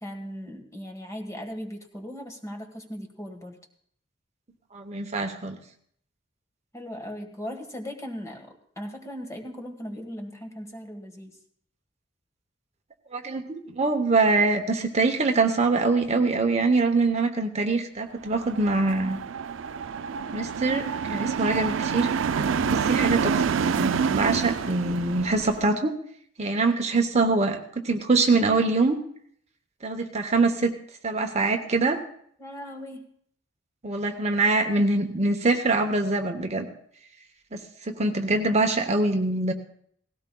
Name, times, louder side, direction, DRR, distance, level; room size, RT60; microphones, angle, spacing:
voice 1, 0.0-3.6 6.7-11.3 32.4-33.1, equal, 15° left, 3 dB, 1.5 m, -38 dB
voice 2, 4.7-5.6 13.1-19.2 20.3-22.1 22.4-25.9 26.4-29.0 29.8-30.7 31.0-32.0 33.8-36.7 37.5-39.5, right 3 dB, 35° right, 5 dB, 0.9 m, -24 dB
sound 1, 18.3-25.7, right 6 dB, 80° right, 0.4 m, -27 dB
18.5 x 16.5 x 2.3 m, 0.63 s
head